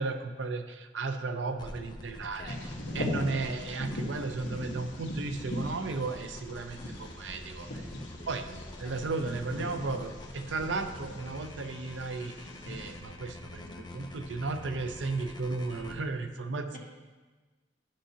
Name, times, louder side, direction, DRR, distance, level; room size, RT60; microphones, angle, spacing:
voice 1, 0.0-2.6 2.9-7.9 8.3-8.5 8.8-16.8, right 3 dB, 90° right, 8 dB, 0.6 m, -34 dB
sound 1, 1.6-15.9, left 1 dB, 25° left, 0.6 m, -46 dB
voice 2, 2.3-3.4 8.2-9.1 13.6-14.0 16.7-16.8, left 1 dB, 50° left, -1 dB, 1.4 m, -51 dB
Bird vocalization bird call bird song, 2.5-13.0, left 1 dB, 75° left, 1.3 m, -40 dB
11.5 x 5.6 x 2.8 m, 1.3 s
head